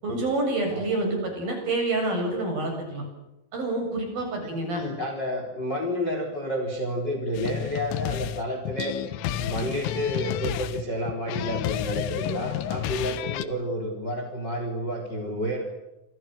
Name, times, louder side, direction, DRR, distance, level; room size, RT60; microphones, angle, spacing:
voice 1, 0.0-3.0 3.5-4.8, right 2 dB, 45° right, 3 dB, 9.4 m, -27 dB
voice 2, 4.4-9.0 9.3-15.6, equal, 25° left, 4 dB, 3.9 m, -30 dB
sound 1, 7.4-13.5, left 11 dB, 80° left, 3.6 m, -30 dB
28.5 x 26.0 x 6.6 m, 0.93 s
omnidirectional pair, 5.9 m